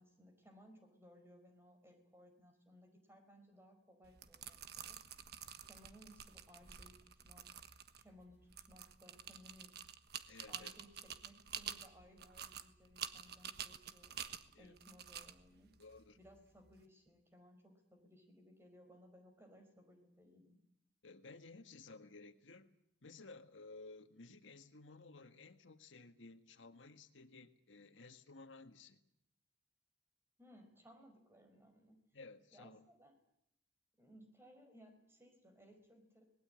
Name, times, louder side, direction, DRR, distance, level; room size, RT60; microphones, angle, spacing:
voice 1, 0.0-5.4 5.7-7.5 8.0-9.7 10.2-14.1 14.6-15.7 16.2-20.6 30.4-32.0 32.5-33.1 34.0-36.2, equal, 15° right, 5 dB, 4.8 m, -62 dB
sound 1, 4.0-16.8, right 8 dB, 60° right, 1.3 m, -50 dB
voice 2, 10.3-10.8 14.5-14.8 15.8-16.2 21.0-22.7 23.0-29.0 32.1-32.8, left 3 dB, 90° left, 8 dB, 1.6 m, -56 dB
26.0 x 19.5 x 8.9 m, 0.77 s
head